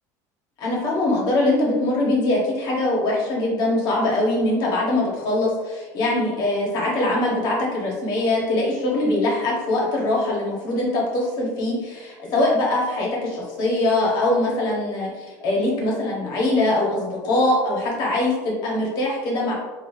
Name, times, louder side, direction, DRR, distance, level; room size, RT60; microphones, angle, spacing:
voice 1, 0.6-19.5, left 2 dB, 50° left, -3 dB, 1.4 m, -22 dB
5.3 x 2.7 x 2.7 m, 1.2 s
cardioid pair, 155°, 9 cm